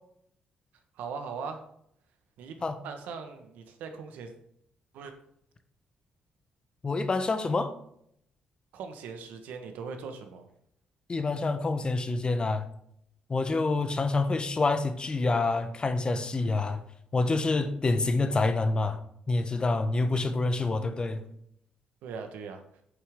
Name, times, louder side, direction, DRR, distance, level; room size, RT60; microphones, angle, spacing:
voice 1, 0.9-1.6 2.4-2.6 2.8-4.3 4.9-5.1 8.7-10.5 22.0-22.6, right 5 dB, 85° right, 1.3 m, -39 dB
voice 2, 6.8-7.7 11.1-12.7 13.3-16.8 17.1-19.0 19.3-21.2, left 3 dB, 35° left, 1.0 m, -27 dB
8.8 x 7.5 x 3.7 m
cardioid pair, 75°, 3 cm